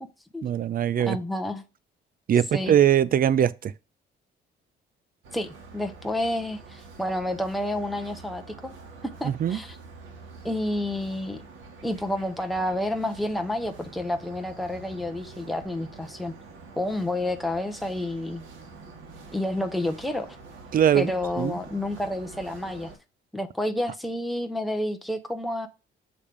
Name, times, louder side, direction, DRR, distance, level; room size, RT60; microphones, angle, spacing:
voice 1, 0.4-1.2 2.3-3.7 9.2-9.6 20.7-21.1 21.4-21.6, right 10 dB, 45° right, 0.5 m, -21 dB
voice 2, 1.0-1.6 2.5-2.7 5.3-8.7 9.2-9.8 10.4-11.4 11.8-16.3 16.8-18.4 19.3-20.4 20.9-22.9 23.3-25.7, left 1 dB, ahead, 0.8 m, -29 dB
sound 1, 5.2-23.0, right 4 dB, 80° right, 1.9 m, -46 dB
7.1 x 3.3 x 5.1 m
cardioid pair, 90°, 20 cm